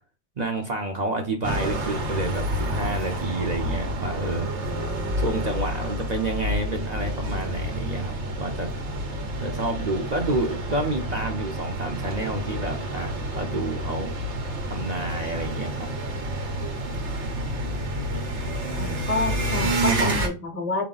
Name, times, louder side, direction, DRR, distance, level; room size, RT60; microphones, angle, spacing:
voice 1, 0.4-4.5 5.2-8.7 9.4-14.1 14.6-15.9, right 2 dB, 45° right, 2 dB, 0.7 m, -29 dB
sound 1, 1.4-20.3, right 1 dB, 85° right, 1.3 m, -29 dB
voice 2, 18.8-20.9, left 3 dB, 35° left, 4 dB, 1.0 m, -28 dB
4.2 x 2.9 x 3.8 m, 0.33 s
omnidirectional pair, 1.2 m